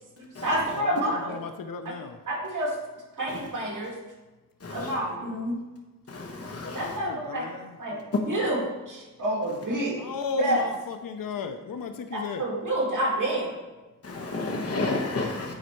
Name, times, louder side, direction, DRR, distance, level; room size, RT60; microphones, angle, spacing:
voice 1, 0.2-1.2 1.9-2.0 2.3-2.7 3.2-3.9 4.7-5.5 6.7-7.4 7.8-8.0 8.3-8.6 8.9-10.1 10.4-10.6 12.1-13.6, right 1 dB, 70° right, -2 dB, 2.2 m, -28 dB
voice 2, 0.7-2.2 5.0-5.5 6.8-8.1 10.0-12.5, left 5 dB, 90° left, 7 dB, 0.5 m, -35 dB
voice 3, 4.6-4.9 6.1-7.0 14.0-15.5, left 2 dB, 45° left, 0 dB, 1.0 m, -31 dB
9.1 x 4.3 x 4.5 m, 1.1 s
wide cardioid pair, 110°, 33 cm